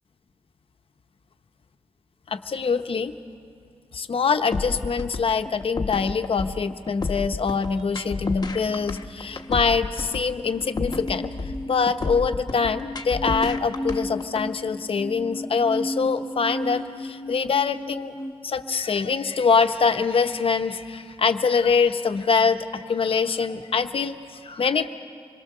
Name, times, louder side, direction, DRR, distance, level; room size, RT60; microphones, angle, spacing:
voice 1, 2.3-3.2 3.9-11.3 11.7-18.1 18.4-24.9, left 5 dB, 60° left, 8 dB, 1.0 m, -24 dB
sound 1, 4.5-14.4, left 4 dB, 40° left, 1.1 m, -31 dB
sound 2, 8.7-18.3, left 1 dB, 10° left, 1.8 m, -34 dB
26.0 x 22.0 x 6.7 m, 2.6 s
wide cardioid pair, 120°, 11 cm